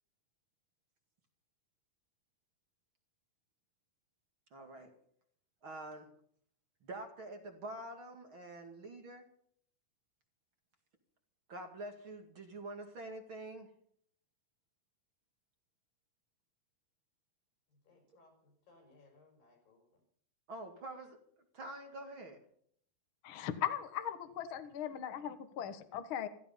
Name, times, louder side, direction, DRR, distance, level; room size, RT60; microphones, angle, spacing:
voice 1, 4.5-4.9 5.6-6.1 6.8-9.3 11.5-13.7 20.5-21.2 21.5-22.4, right 1 dB, 40° right, 4 dB, 2.6 m, -46 dB
voice 2, 17.9-20.0, left 2 dB, 85° left, 4 dB, 6.8 m, -65 dB
voice 3, 23.2-26.3, left 10 dB, 60° left, 9 dB, 1.4 m, -38 dB
16.0 x 14.5 x 5.5 m, 0.63 s
omnidirectional pair, 4.0 m